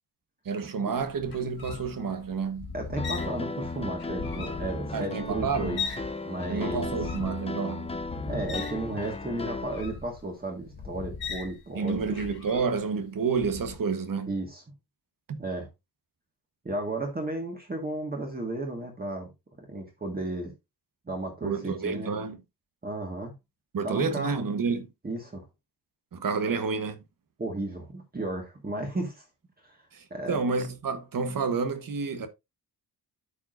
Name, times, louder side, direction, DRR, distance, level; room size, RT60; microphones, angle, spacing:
voice 1, 0.4-2.7 4.9-5.9 6.5-7.9 11.7-14.4 15.3-15.4 21.4-22.4 23.7-24.9 26.1-27.0 29.9-32.3, right 5 dB, 55° right, 1.2 m, -29 dB
sound 1, 1.0-6.1 6.4-12.9 13.3-13.8, left 5 dB, 70° left, 1.8 m, -39 dB
voice 2, 2.7-5.8 6.2-7.0 8.3-12.2 14.3-14.6 15.4-15.7 16.6-19.3 19.6-20.5 21.1-22.1 22.8-23.3 23.8-24.4 25.0-25.4 27.4-29.2 29.6-29.8 30.1-30.4, right 2 dB, 25° right, 1.6 m, -34 dB
Piano, 3.0-9.8, left 3 dB, 15° left, 0.6 m, -35 dB
13.0 x 4.8 x 2.5 m
wide cardioid pair, 175°, 39 cm